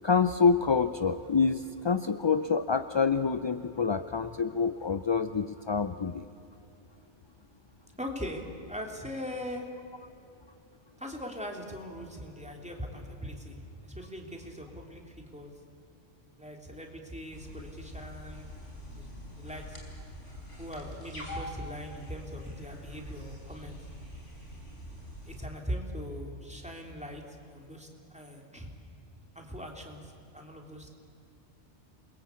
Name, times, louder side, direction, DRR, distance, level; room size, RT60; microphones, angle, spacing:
voice 1, 0.0-6.3, left 5 dB, 35° left, 10 dB, 0.4 m, -27 dB
voice 2, 8.0-9.7 11.0-15.5 16.4-19.1 19.4-19.8 20.6-23.8 25.2-28.7 29.3-30.9, equal, 5° right, 1 dB, 3.2 m, -41 dB
sound 1, 17.3-25.5, equal, 80° left, 4.9 m, -45 dB
28.0 x 22.0 x 8.4 m, 2.8 s
omnidirectional pair, 1.2 m